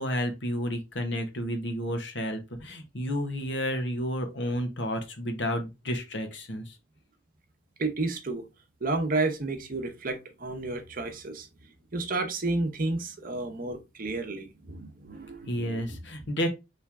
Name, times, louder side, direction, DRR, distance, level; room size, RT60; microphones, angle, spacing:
voice 1, 0.0-6.8 15.5-16.5, equal, 60° left, 1.2 m, -31 dB
voice 2, 7.8-8.4 8.8-11.5 11.9-16.0, right 2 dB, 45° right, 0.9 m, -31 dB
4.4 x 3.3 x 3.5 m
head